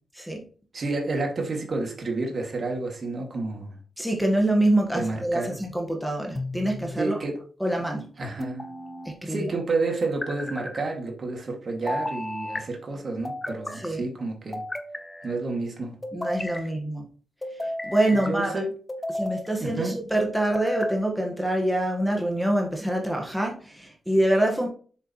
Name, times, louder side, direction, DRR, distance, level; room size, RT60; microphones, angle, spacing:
voice 1, 0.2-0.5 4.0-7.2 7.6-8.1 9.0-9.5 13.7-14.1 16.1-17.1 17.8-18.6 19.1-24.7, right 1 dB, ahead, 0 dB, 1.5 m, -25 dB
voice 2, 0.7-3.8 4.9-5.6 7.0-7.4 8.2-8.6 9.3-14.6 15.2-15.9 16.6-16.7 18.1-18.7 19.6-19.9, right 3 dB, 45° right, 1 dB, 2.3 m, -30 dB
sound 1, 6.4-7.0 8.4-9.2 10.0-10.8 11.9-12.6 13.2-13.9 14.5-15.4 16.0-16.7 17.4-18.3 18.9-19.5 20.2-21.0, left 1 dB, 20° left, 1.0 m, -33 dB
6.9 x 6.8 x 3.1 m, 0.41 s
cardioid pair, 90°, 0 cm